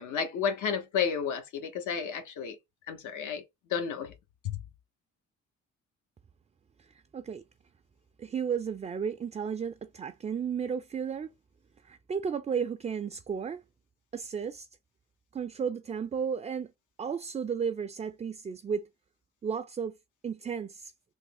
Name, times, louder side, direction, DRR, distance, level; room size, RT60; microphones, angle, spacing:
voice 1, 0.0-2.6 2.9-3.4 3.7-4.1, left 7 dB, 80° left, 0.8 m, -31 dB
voice 2, 6.8-7.4 8.2-11.3 11.8-13.6 14.1-14.7 15.3-16.7 17.0-18.9 19.4-20.0 20.2-20.9, right 7 dB, 25° right, 0.3 m, -33 dB
3.4 x 2.0 x 3.5 m
cardioid pair, 90°, 30 cm